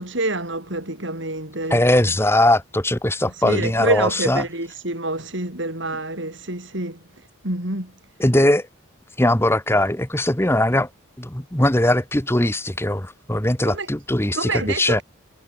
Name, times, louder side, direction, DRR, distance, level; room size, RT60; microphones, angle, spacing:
voice 1, 0.0-1.8 3.4-7.0 7.4-7.9 13.6-13.9 14.3-15.0, right 2 dB, 60° right, 5.0 m, -27 dB
voice 2, 1.7-4.4 8.2-8.7 9.2-10.9 11.2-15.0, left 1 dB, 10° left, 1.5 m, -20 dB
head